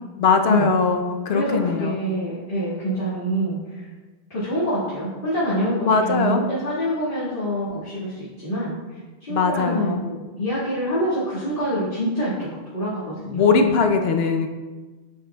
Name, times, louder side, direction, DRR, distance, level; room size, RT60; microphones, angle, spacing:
voice 1, 0.2-2.0 5.8-6.4 9.3-10.0 13.3-14.5, left 5 dB, 75° left, 5 dB, 0.9 m, -20 dB
voice 2, 1.3-3.9 4.3-12.5 12.7-13.6, equal, 55° left, -11 dB, 2.1 m, -26 dB
8.9 x 6.6 x 2.3 m, 1.3 s
omnidirectional pair, 1.1 m